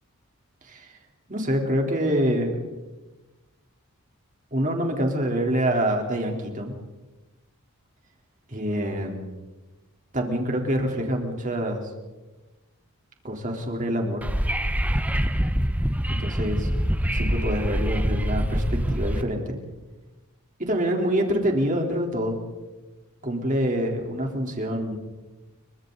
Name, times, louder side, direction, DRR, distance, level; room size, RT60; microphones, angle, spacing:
voice 1, 0.6-1.0 1.3-2.6 4.5-6.7 8.5-9.2 10.1-11.8 13.2-14.3 16.1-16.7 17.1-19.6 20.6-22.4 23.2-25.0, equal, 35° right, 1 dB, 3.6 m, -26 dB
Wind / Subway metro underground, 14.2-19.2, equal, 5° right, 0.8 m, -25 dB
30.0 x 24.0 x 4.0 m, 1.2 s
head